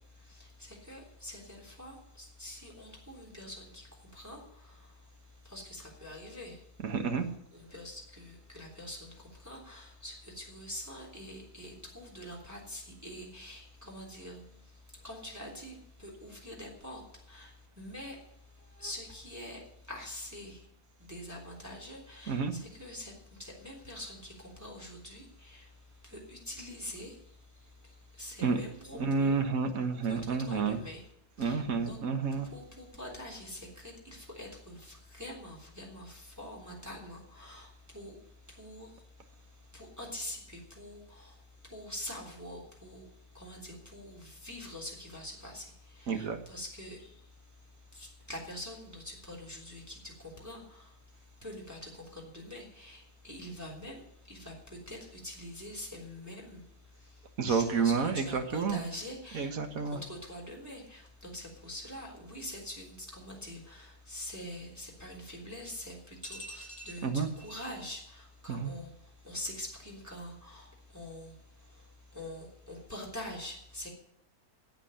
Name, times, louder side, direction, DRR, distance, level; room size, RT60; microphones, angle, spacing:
voice 1, 0.1-5.0 5.4-6.6 7.5-18.2 18.6-20.7 21.0-25.7 26.0-29.4 30.0-31.1 31.4-32.0 32.4-38.2 38.5-39.0 39.7-43.1 43.3-47.3 47.9-50.9 51.4-56.6 56.9-59.5 59.8-73.9, left 1 dB, 10° right, -2 dB, 3.4 m, -45 dB
voice 2, 6.8-7.3 22.3-22.5 28.4-28.6 28.9-30.8 31.4-32.5 46.1-46.4 57.4-58.8 59.3-60.0 67.0-67.3 68.5-68.7, right 5 dB, 65° right, 7 dB, 1.8 m, -30 dB
12.0 x 8.2 x 9.9 m, 0.75 s
omnidirectional pair, 1.6 m